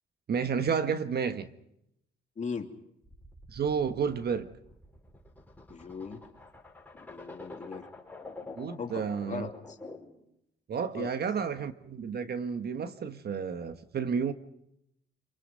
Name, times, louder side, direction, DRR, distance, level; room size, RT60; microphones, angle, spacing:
voice 1, 0.3-1.5 3.5-4.5 8.5-9.5 10.7-14.3, right 6 dB, 55° right, 1.4 m, -31 dB
voice 2, 2.4-2.7 5.7-6.2 6.9-7.8 8.8-9.8 10.9-11.1, left 5 dB, 35° left, 2.6 m, -39 dB
sound 1, 3.0-10.2, left 2 dB, 10° left, 5.8 m, -48 dB
27.0 x 23.5 x 5.4 m
cardioid pair, 90°, 20 cm